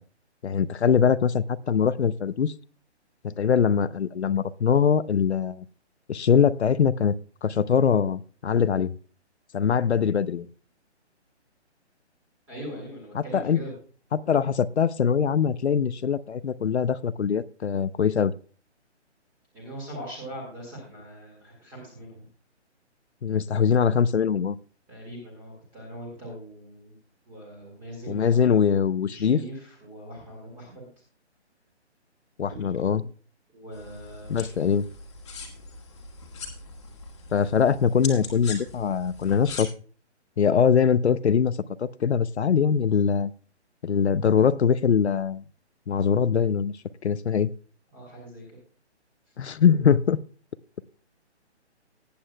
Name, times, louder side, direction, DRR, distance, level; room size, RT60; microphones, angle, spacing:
voice 1, 0.4-2.5 3.2-5.6 6.1-7.1 7.4-8.9 9.5-10.5 13.1-13.6 14.1-18.3 23.2-24.6 28.1-29.4 32.4-33.0 34.3-34.8 37.3-39.7 40.4-43.3 43.8-45.4 45.9-46.7 47.0-47.5 49.4-50.2, left 7 dB, 70° left, 17 dB, 0.7 m, -22 dB
voice 2, 12.5-13.7 19.5-22.3 24.9-27.0 27.3-28.5 29.1-30.9 33.5-34.5 47.9-48.6, equal, 5° right, -2 dB, 2.0 m, -41 dB
sound 1, 33.7-39.6, left 4 dB, 25° left, 1.7 m, -41 dB
19.5 x 8.7 x 2.2 m, 0.41 s
hypercardioid pair, 180°, 35 cm